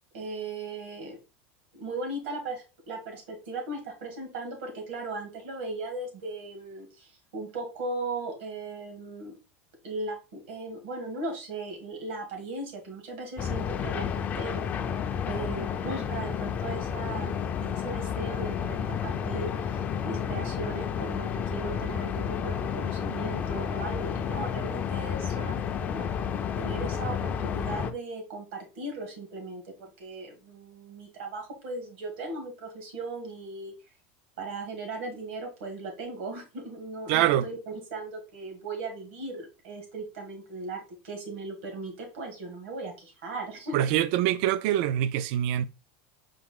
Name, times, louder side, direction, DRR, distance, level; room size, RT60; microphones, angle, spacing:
voice 1, 0.1-1.2 1.7-9.3 9.8-14.6 15.3-17.3 17.6-26.1 26.5-33.7 34.4-43.8, right 2 dB, 80° right, 1.8 m, -37 dB
sound 1, 13.4-27.9, left 7 dB, 25° left, 0.4 m, -31 dB
voice 2, 37.1-37.4 43.7-45.7, right 12 dB, 60° right, 0.3 m, -24 dB
4.8 x 2.4 x 3.7 m
supercardioid pair, 145°, 6 cm